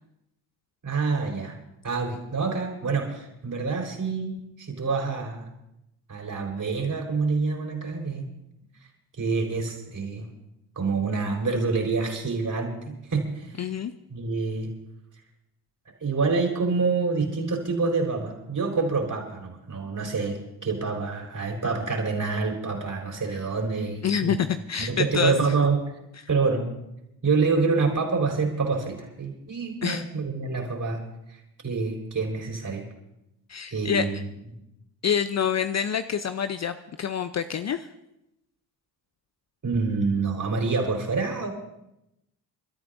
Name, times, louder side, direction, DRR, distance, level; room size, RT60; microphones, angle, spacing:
voice 1, 0.8-1.6 1.8-5.5 6.1-8.3 9.2-10.3 10.8-13.7 14.1-14.7 15.9-24.4 24.8-25.8 26.3-26.7 27.2-31.0 31.3-32.8 33.7-34.3 39.6-41.5, right 4 dB, 40° right, 2 dB, 4.3 m, -27 dB
voice 2, 13.6-13.9 24.0-25.4 29.8-30.0 33.5-34.1 35.0-37.9, left 8 dB, 35° left, 11 dB, 0.6 m, -27 dB
29.0 x 13.0 x 2.6 m, 0.86 s
hypercardioid pair, 45°, 49 cm